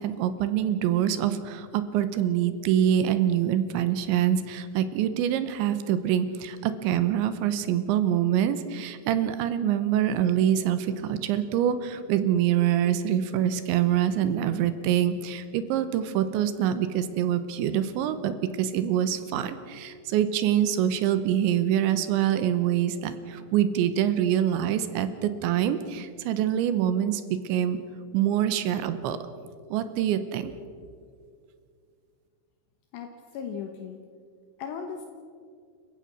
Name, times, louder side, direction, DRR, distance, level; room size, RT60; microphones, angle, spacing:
voice 1, 0.0-27.8 28.1-29.2 29.7-30.5, right 10 dB, 80° right, 11 dB, 3.1 m, -25 dB
voice 2, 32.9-34.0 34.6-35.1, left 7 dB, 70° left, 4 dB, 3.2 m, -37 dB
29.0 x 15.5 x 6.2 m, 2.2 s
omnidirectional pair, 5.4 m